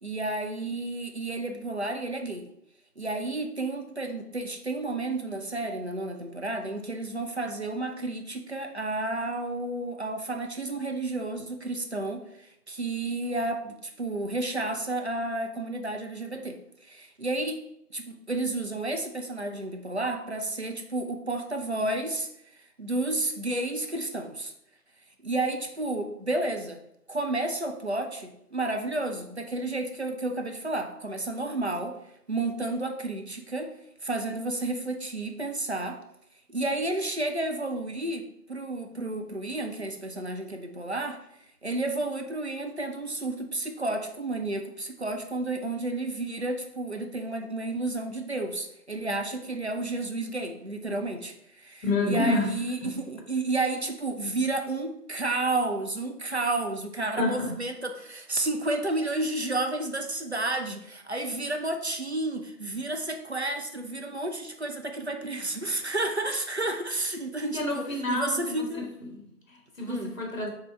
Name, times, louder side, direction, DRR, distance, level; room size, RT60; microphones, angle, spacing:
voice 1, 0.0-2.5 3.0-17.6 17.9-22.3 22.8-24.5 25.2-26.8 27.1-32.0 32.3-33.7 34.0-36.0 36.5-38.2 38.5-41.2 41.6-68.9 69.9-70.1, right 2 dB, 45° right, 5 dB, 0.5 m, -31 dB
voice 2, 51.8-53.0 57.2-57.6 67.5-68.8 69.1-70.5, left 2 dB, 55° left, 0 dB, 1.5 m, -29 dB
4.2 x 3.4 x 3.6 m, 0.78 s
figure-of-eight pair, 155°, 48 cm